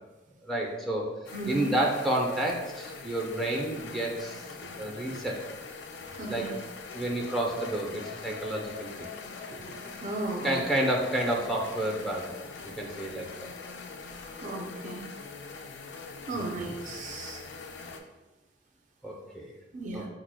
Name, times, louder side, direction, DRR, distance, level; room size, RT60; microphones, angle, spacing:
voice 1, 0.4-1.1 1.5-4.4 4.8-5.4 6.3-6.5 6.9-9.1 10.4-12.3 12.8-13.3 16.3-16.7 19.0-19.5 19.9-20.0, right 1 dB, ahead, -1 dB, 0.6 m, -30 dB
sound 1, 1.2-18.0, left 4 dB, 85° left, 0.4 m, -43 dB
voice 2, 1.3-1.7 6.0-6.6 9.7-10.6 14.3-15.1 16.3-17.4 19.7-20.1, right 2 dB, 45° right, 1 dB, 0.4 m, -36 dB
6.1 x 2.1 x 2.2 m, 1.0 s
head